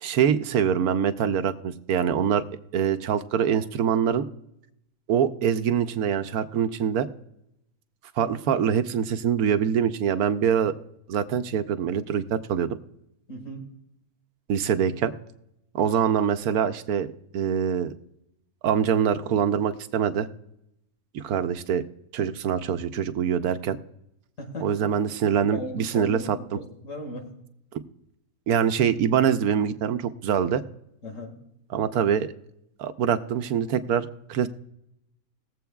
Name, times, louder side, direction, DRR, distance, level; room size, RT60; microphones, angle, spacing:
voice 1, 0.0-2.4 2.7-4.2 5.1-7.1 8.2-10.7 11.1-12.8 14.5-15.1 15.7-17.9 18.6-20.3 21.1-21.8 22.1-23.8 24.6-26.4 28.5-30.6 31.7-32.3 32.8-34.5, right 8 dB, 80° right, 10 dB, 1.2 m, -24 dB
voice 2, 13.3-13.7 24.4-24.7 25.5-27.3 31.0-31.4, left 1 dB, 60° left, 3 dB, 2.2 m, -37 dB
21.0 x 7.8 x 2.3 m, 0.80 s
omnidirectional pair, 1.5 m